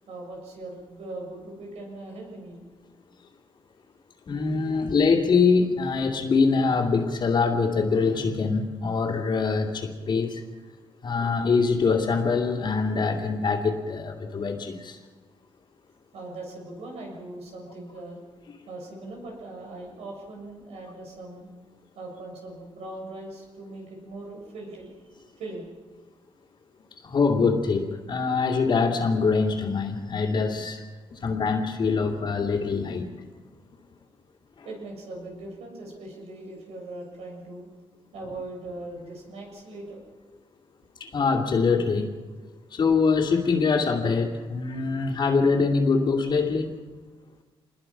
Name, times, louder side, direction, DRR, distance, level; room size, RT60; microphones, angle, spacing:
voice 1, 0.1-2.6 16.1-18.2 18.7-21.5 22.0-24.9 25.4-25.7 34.6-37.7 38.1-40.1 42.4-42.5, right 2 dB, 90° right, 0 dB, 6.9 m, -40 dB
voice 2, 4.3-10.4 11.0-15.0 27.0-30.8 31.1-33.1 41.0-42.1 42.7-46.8, left 4 dB, 50° left, -4 dB, 2.6 m, -24 dB
27.0 x 21.5 x 5.9 m, 1.4 s
cardioid pair, 125°, 10 cm